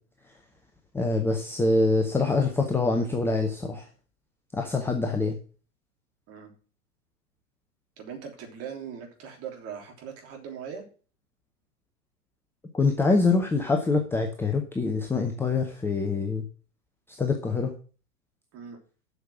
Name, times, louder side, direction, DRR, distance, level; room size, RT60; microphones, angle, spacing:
voice 1, 0.9-3.8 4.5-5.4 12.7-16.4 17.2-17.7, left 3 dB, 5° left, 4 dB, 0.7 m, -25 dB
voice 2, 8.0-10.8 18.5-18.8, right 7 dB, 30° right, 2 dB, 3.4 m, -40 dB
8.1 x 6.5 x 7.3 m, 0.38 s
figure-of-eight pair, 100°, 46 cm